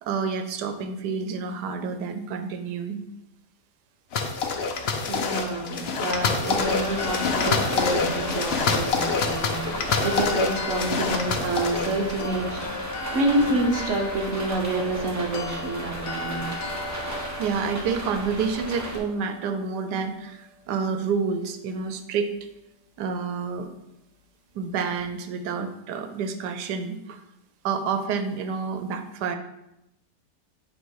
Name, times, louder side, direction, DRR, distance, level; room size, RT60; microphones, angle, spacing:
voice 1, 0.0-3.0 17.0-17.1 17.4-22.3 23.0-23.7 24.5-27.2 27.6-29.4, right 5 dB, 85° right, 8 dB, 1.2 m, -29 dB
sound 1, 4.1-12.2, left 4 dB, 55° left, 0.7 m, -26 dB
voice 2, 5.1-9.7 10.0-12.6 13.1-16.5, right 2 dB, 55° right, 2 dB, 1.2 m, -27 dB
sound 2, 6.4-19.6, left 3 dB, 75° left, 1.3 m, -37 dB
sound 3, 6.5-19.0, right 1 dB, 15° right, 0.9 m, -35 dB
8.5 x 3.0 x 4.6 m, 0.87 s
omnidirectional pair, 1.7 m